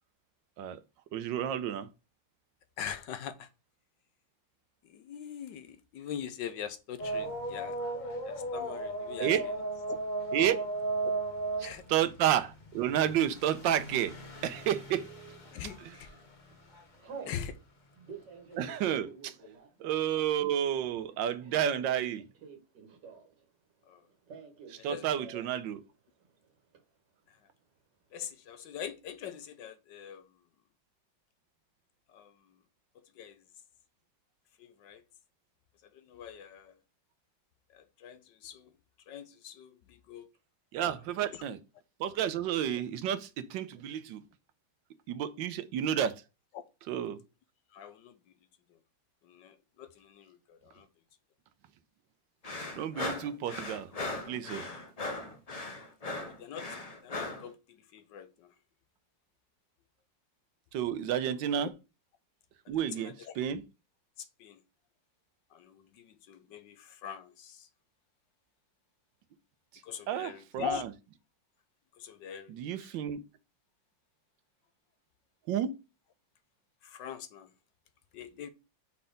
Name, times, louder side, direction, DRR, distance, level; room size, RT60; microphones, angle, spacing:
voice 1, 1.1-1.9 9.2-9.5 10.3-10.6 11.9-14.1 14.4-15.1 18.6-19.3 19.8-22.2 24.7-25.8 40.7-41.6 42.0-44.2 45.1-46.2 46.9-47.2 52.7-53.9 54.3-54.6 60.7-61.7 62.7-63.6 70.1-70.9 72.5-73.2 75.5-75.7, right 10 dB, 85° right, 1.4 m, -31 dB
voice 2, 2.8-3.5 4.8-7.8 8.2-9.5 9.9-10.0 11.0-11.1 11.6-11.8 15.5-16.1 17.3-17.6 23.8-24.1 24.8-25.1 27.3-27.4 28.1-30.3 32.1-32.5 33.1-33.4 34.6-35.0 35.9-36.8 37.7-38.7 39.1-40.3 41.3-41.4 47.7-48.2 48.7-48.8 49.2-50.9 56.0-56.8 57.0-58.5 62.6-63.3 64.2-64.6 65.5-67.7 69.8-70.8 72.0-72.9 76.8-77.5 78.1-78.5, left 8 dB, 75° left, 1.5 m, -43 dB
sound 1, 7.0-16.8 17.3-17.4 18.5-18.6, right 2 dB, 30° left, 1.0 m, -36 dB
Telephone, 14.9-15.4 16.0-16.2 16.5-17.4 17.9-23.4 23.7-24.8 25.1-25.6 25.9-26.0 26.2-26.8, right 6 dB, 65° right, 1.9 m, -49 dB
sound 2, 52.4-57.5, left 2 dB, 45° left, 0.4 m, -38 dB
5.6 x 4.2 x 5.1 m
omnidirectional pair, 2.0 m